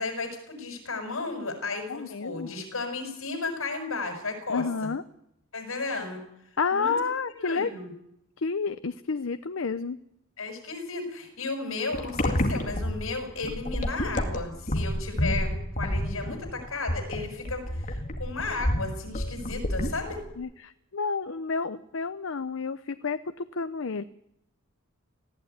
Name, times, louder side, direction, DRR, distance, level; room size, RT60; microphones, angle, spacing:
voice 1, 0.0-4.9 5.5-6.2 6.7-6.9 7.3-7.9 10.4-20.2, left 3 dB, 85° left, 5 dB, 6.4 m, -34 dB
voice 2, 1.9-2.5 4.5-5.0 6.6-7.7 8.4-10.0 20.4-24.0, left 5 dB, 70° left, 12 dB, 0.7 m, -30 dB
sound 1, 11.9-20.3, left 1 dB, 40° left, 2.2 m, -29 dB
19.5 x 15.5 x 9.4 m, 0.80 s
head